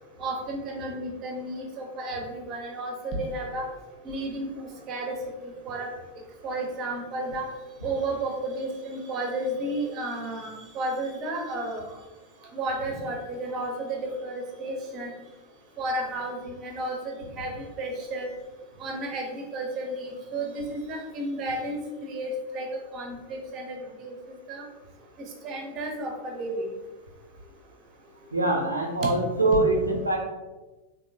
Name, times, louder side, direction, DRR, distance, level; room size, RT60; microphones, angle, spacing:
voice 1, 0.2-3.6 4.0-5.2 5.4-5.9 6.4-7.4 7.8-11.8 12.5-15.1 15.8-17.0 17.4-17.5 17.8-18.3 18.8-22.7 22.9-24.1 24.5-24.6 25.4-26.5, right 1 dB, 35° right, 1 dB, 0.8 m, -32 dB
voice 2, 28.3-30.2, right 2 dB, 80° right, 1 dB, 0.5 m, -23 dB
3.7 x 2.8 x 2.7 m, 1.1 s
figure-of-eight pair, 90°, 0 cm